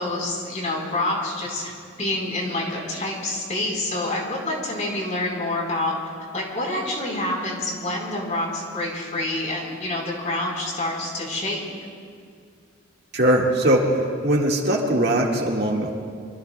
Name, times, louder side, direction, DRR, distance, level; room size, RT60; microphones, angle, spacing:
voice 1, 0.0-5.9 6.3-11.6, left 2 dB, 35° left, -2 dB, 4.0 m, -27 dB
voice 2, 13.1-15.9, right 1 dB, 55° right, -1 dB, 1.7 m, -20 dB
25.5 x 24.5 x 2.2 m, 2.2 s
head